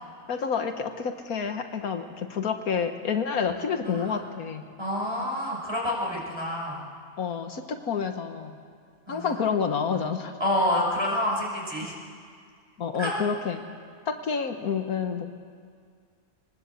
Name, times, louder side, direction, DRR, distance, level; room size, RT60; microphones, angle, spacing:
voice 1, 0.3-4.7 7.2-8.5 9.1-10.3 12.8-13.6 14.1-15.3, left 6 dB, 80° left, 6 dB, 1.7 m, -29 dB
voice 2, 3.4-4.2 4.8-6.8 9.1-9.4 10.4-11.9 13.0-13.1, left 1 dB, 20° right, -2 dB, 5.6 m, -28 dB
22.5 x 20.0 x 8.3 m, 2.1 s
omnidirectional pair, 1.5 m